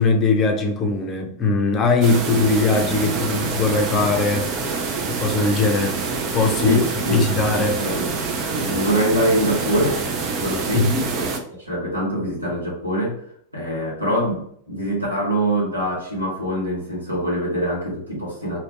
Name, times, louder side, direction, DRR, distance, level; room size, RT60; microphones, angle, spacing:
voice 1, 0.0-4.7 5.1-6.0 6.3-6.8 7.1-7.8 10.7-11.2, left 3 dB, 25° left, 0.6 m, -20 dB
sound 1, 2.0-11.4, right 4 dB, 35° right, 0.6 m, -26 dB
voice 2, 6.6-7.2 7.8-8.1 8.5-10.0 10.4-11.3 11.6-13.2 13.5-18.6, equal, 85° right, 1.5 m, -24 dB
3.1 x 2.9 x 2.8 m
figure-of-eight pair, 90°, 0 cm